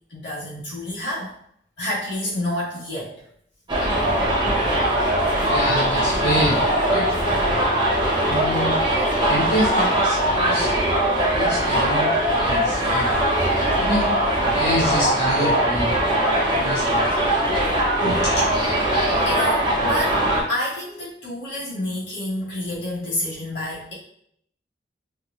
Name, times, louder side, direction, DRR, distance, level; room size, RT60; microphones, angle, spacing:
voice 1, 0.1-1.3 1.8-3.2 11.3-11.4 19.2-23.9, left 1 dB, 70° left, -7 dB, 1.4 m, -28 dB
Subway metro underground, 3.7-20.4, right 1 dB, 25° right, 0.9 m, -21 dB
voice 2, 5.4-7.1 8.2-8.8 9.2-10.7 11.3-13.1 13.7-14.1 14.5-15.9 16.5-17.1 18.0-18.4, equal, 90° left, -9 dB, 1.2 m, -26 dB
4.5 x 2.4 x 2.4 m, 0.69 s
head